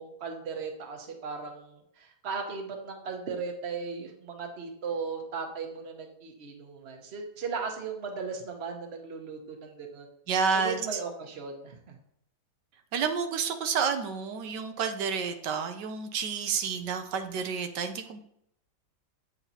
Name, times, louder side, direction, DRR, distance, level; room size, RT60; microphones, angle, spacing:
voice 1, 0.0-10.1 10.5-12.0, right 5 dB, 40° right, 3 dB, 1.3 m, -37 dB
voice 2, 10.3-11.0 12.9-18.2, right 6 dB, 85° right, 7 dB, 1.4 m, -30 dB
8.6 x 6.9 x 2.8 m, 0.72 s
omnidirectional pair, 1.8 m